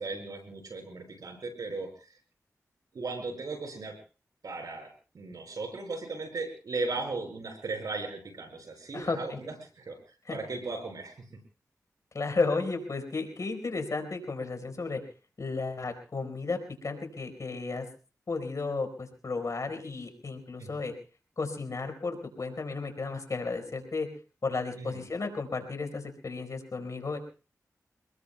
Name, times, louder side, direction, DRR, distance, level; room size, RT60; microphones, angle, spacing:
voice 1, 0.0-1.9 2.9-4.0 4.4-10.0 10.3-11.2 20.6-20.7 24.8-25.0, right 3 dB, 80° right, 4 dB, 5.3 m, -37 dB
voice 2, 8.9-9.4 10.3-10.4 12.1-15.0 15.4-16.6 16.8-17.9 18.3-20.9 21.4-24.1 24.4-27.2, left 3 dB, 60° left, 6 dB, 4.6 m, -33 dB
29.5 x 20.0 x 2.3 m, 0.36 s
cardioid pair, 45°, 6 cm